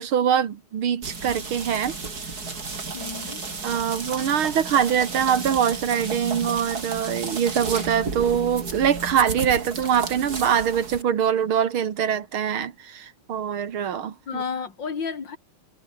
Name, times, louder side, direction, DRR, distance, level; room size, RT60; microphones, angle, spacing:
voice 1, 0.0-2.0 3.6-14.4, right 8 dB, 85° right, 2.5 m, -23 dB
sound 1, 1.0-11.0, right 4 dB, 45° right, 3.9 m, -33 dB
voice 2, 2.9-3.4 14.3-15.4, left 5 dB, 60° left, 3.0 m, -31 dB
omnidirectional pair, 2.2 m